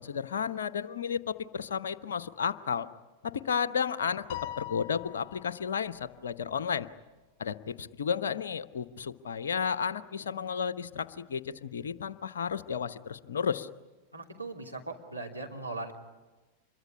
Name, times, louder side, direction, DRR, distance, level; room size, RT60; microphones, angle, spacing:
voice 1, 0.0-2.9 3.2-6.9 7.4-13.7, left 7 dB, 65° left, 14 dB, 1.0 m, -33 dB
Piano, 4.3-5.8, left 14 dB, 50° left, 2.6 m, -41 dB
voice 2, 14.1-15.9, right 2 dB, 90° right, 0 dB, 3.1 m, -39 dB
26.5 x 22.5 x 10.0 m, 1.2 s
figure-of-eight pair, 90°, 0 cm